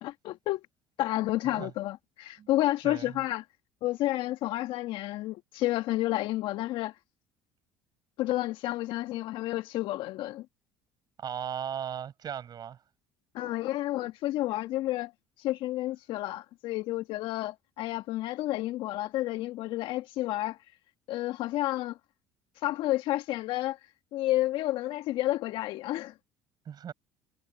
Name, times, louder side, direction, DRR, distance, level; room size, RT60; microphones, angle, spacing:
voice 1, 0.0-0.6 1.0-3.4 3.8-6.9 8.2-10.4 13.3-15.1 15.4-20.6 21.1-22.0 22.6-23.8 24.1-26.1, left 16 dB, 65° left, 1.4 m, -30 dB
voice 2, 11.2-12.8 26.7-26.9, right 8 dB, 45° right, 7.5 m, -37 dB
hypercardioid pair, 65°, 9 cm